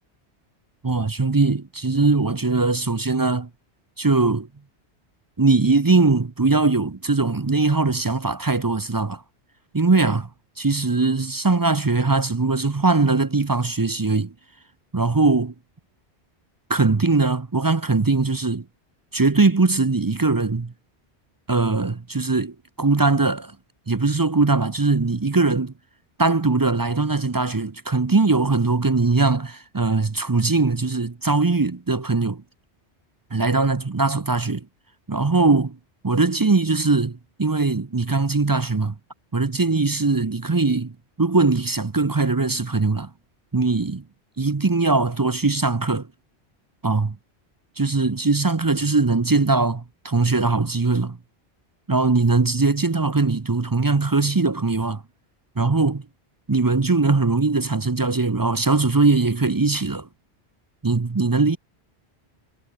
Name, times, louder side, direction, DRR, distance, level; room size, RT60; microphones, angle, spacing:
voice 1, 0.8-3.5 4.0-4.5 5.4-9.2 9.7-10.3 10.6-14.3 14.9-15.5 16.7-18.6 19.1-20.7 21.5-23.6 23.9-25.7 26.2-32.4 33.3-34.7 35.1-35.8 36.0-38.9 39.3-43.1 43.5-44.0 44.4-46.1 46.8-47.2 47.8-51.2 51.9-55.0 55.6-56.0 56.5-60.1 60.8-61.6, right 3 dB, 25° right, 0.5 m, -21 dB
omnidirectional pair, 1.1 m